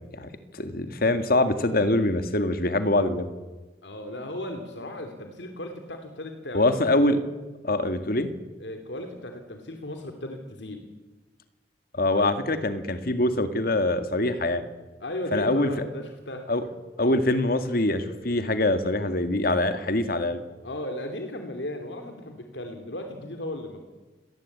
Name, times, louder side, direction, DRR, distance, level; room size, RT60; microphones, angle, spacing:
voice 1, 0.1-3.3 6.5-7.2 7.6-8.3 11.9-14.7 15.3-15.7 16.5-16.6 17.0-20.4, left 2 dB, 55° left, 9 dB, 1.9 m, -24 dB
voice 2, 3.8-6.8 8.6-10.8 12.2-12.6 15.0-16.7 20.6-23.8, left 1 dB, 80° left, 5 dB, 2.9 m, -36 dB
26.0 x 19.0 x 8.7 m, 1.2 s
head